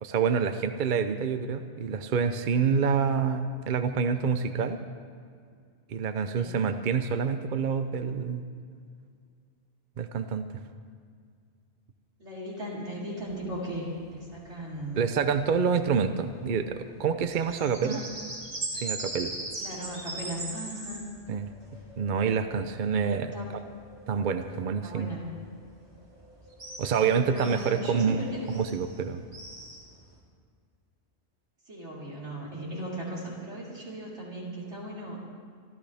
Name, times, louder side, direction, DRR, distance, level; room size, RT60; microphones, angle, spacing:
voice 1, 0.0-4.8 5.9-8.4 10.0-10.6 15.0-18.0 18.7-19.3 21.3-21.5 22.0-23.3 24.1-25.2 26.8-29.2, right 6 dB, 50° right, 8 dB, 0.7 m, -27 dB
voice 2, 12.2-15.1 17.6-18.1 19.6-21.0 22.9-23.5 24.8-25.3 27.0-28.5 31.7-35.2, right 1 dB, 85° right, -6 dB, 4.4 m, -37 dB
sound 1, 13.2-30.2, right 2 dB, 70° right, 2.8 m, -41 dB
25.5 x 13.5 x 3.5 m, 2.1 s
omnidirectional pair, 1.2 m